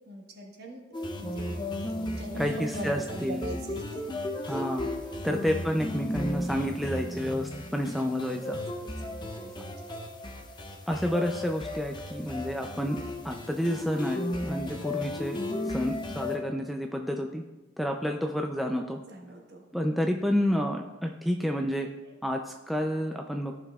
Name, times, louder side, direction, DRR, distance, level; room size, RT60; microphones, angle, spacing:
voice 1, 0.0-0.8 1.1-4.1 4.5-4.6 5.1-5.3 7.0-7.2 9.0-9.9 19.0-19.7 22.0-22.2, right 1 dB, 55° right, 0 dB, 1.3 m, -42 dB
sound 1, 0.9-16.4, left 1 dB, 25° left, 0.7 m, -35 dB
voice 2, 2.4-3.5 4.5-4.9 5.2-8.6 10.9-13.0 13.2-15.4 15.7-17.4 17.8-19.0 19.7-21.9 22.2-23.5, equal, ahead, 2 dB, 0.3 m, -30 dB
14.5 x 6.0 x 2.3 m, 1.1 s
head